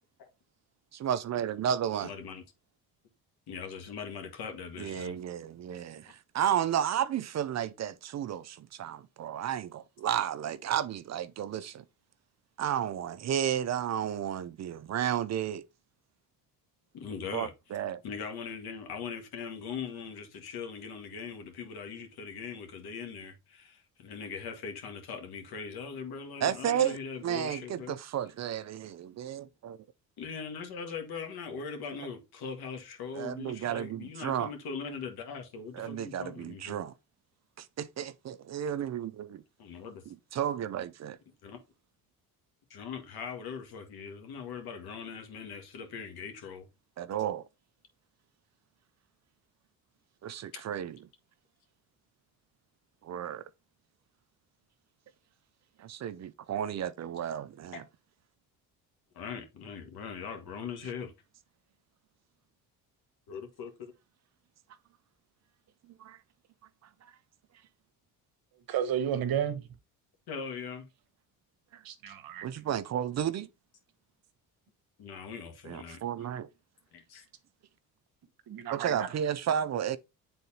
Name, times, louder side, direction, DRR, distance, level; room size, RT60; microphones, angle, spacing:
voice 1, 0.9-2.1 4.8-11.8 12.6-15.6 17.3-18.0 26.4-29.8 33.1-34.5 35.7-36.9 37.6-39.4 40.3-41.2 47.0-47.4 50.2-51.0 53.0-53.4 55.8-57.8 66.0-66.2 67.0-67.1 71.7-71.8 72.4-73.5 75.7-76.5 78.7-80.0, right 9 dB, 45° right, 0.5 m, -32 dB
voice 2, 2.0-2.4 3.5-5.1 16.9-17.5 18.0-28.0 30.2-36.8 39.6-40.0 41.4-41.6 42.7-46.7 50.5-50.6 57.7-57.8 59.1-61.1 63.3-63.9 70.3-70.9 72.1-72.2 75.0-76.0 76.9-77.2, left 6 dB, 70° left, 1.7 m, -41 dB
voice 3, 68.7-69.7 71.8-72.5 78.5-79.1, right 9 dB, 60° right, 1.1 m, -32 dB
9.0 x 3.9 x 2.8 m
supercardioid pair, 75°, 39 cm